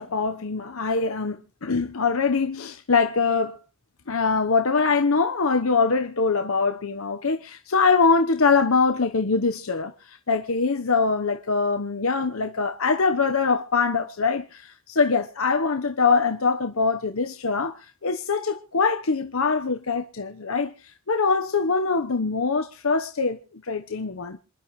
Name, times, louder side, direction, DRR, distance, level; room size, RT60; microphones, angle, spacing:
voice 1, 0.0-3.6 4.1-24.4, left 4 dB, 80° left, 1.0 m, -23 dB
27.5 x 11.5 x 3.1 m
head